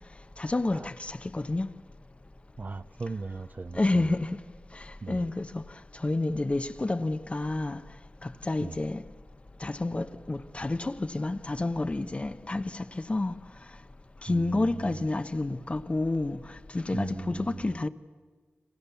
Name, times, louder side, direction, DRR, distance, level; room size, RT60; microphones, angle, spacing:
voice 1, 0.4-1.7 3.7-4.4 4.7-5.6 5.9-7.8 8.2-9.0 9.6-13.4 14.2-17.9, left 2 dB, 30° left, 0.9 m, -29 dB
voice 2, 2.6-4.1 5.0-5.3 8.6-8.8 14.3-15.0 16.9-17.7, right 3 dB, 45° right, 0.7 m, -38 dB
30.0 x 26.5 x 7.0 m
wide cardioid pair, 95°, 4 cm